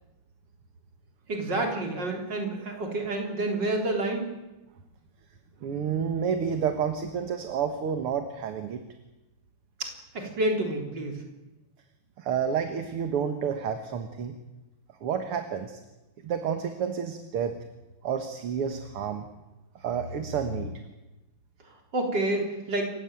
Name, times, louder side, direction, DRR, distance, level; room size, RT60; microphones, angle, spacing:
voice 1, 1.3-4.2 9.8-11.2 21.9-22.8, right 2 dB, 35° right, 2 dB, 4.4 m, -29 dB
voice 2, 5.6-8.8 12.2-14.4 15.0-15.8 16.2-17.5 18.0-19.2 19.8-20.8, right 7 dB, 55° right, 7 dB, 2.1 m, -30 dB
27.5 x 15.5 x 9.2 m, 1.0 s
omnidirectional pair, 3.4 m